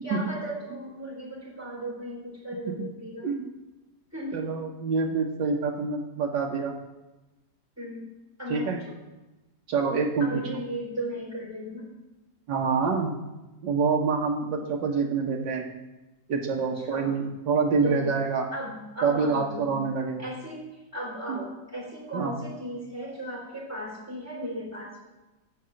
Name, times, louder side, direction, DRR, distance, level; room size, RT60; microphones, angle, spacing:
voice 1, 0.0-3.3 4.1-4.5 7.8-8.0 8.4-8.9 10.2-11.9 16.6-17.2 17.8-18.1 18.5-19.7 20.2-20.6 20.9-25.1, equal, 10° right, -3 dB, 3.5 m, -36 dB
voice 2, 4.3-6.7 8.5-8.8 9.7-10.3 12.5-13.2 13.6-15.7 16.3-18.5 19.0-20.2 21.3-21.4 22.1-22.3, right 5 dB, 85° right, 0 dB, 1.8 m, -26 dB
12.5 x 4.9 x 7.7 m, 1.1 s
omnidirectional pair, 1.9 m